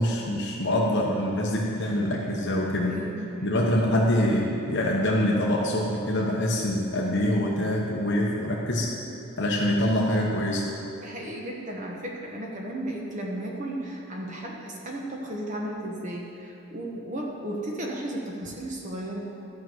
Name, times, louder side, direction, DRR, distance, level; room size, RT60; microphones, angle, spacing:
voice 1, 0.0-3.0 3.4-8.9 9.4-10.7, left 1 dB, 50° left, -3 dB, 1.1 m, -25 dB
voice 2, 2.9-3.7 11.0-19.2, right 1 dB, 35° right, -1 dB, 1.1 m, -34 dB
13.0 x 6.2 x 7.9 m, 2.8 s
head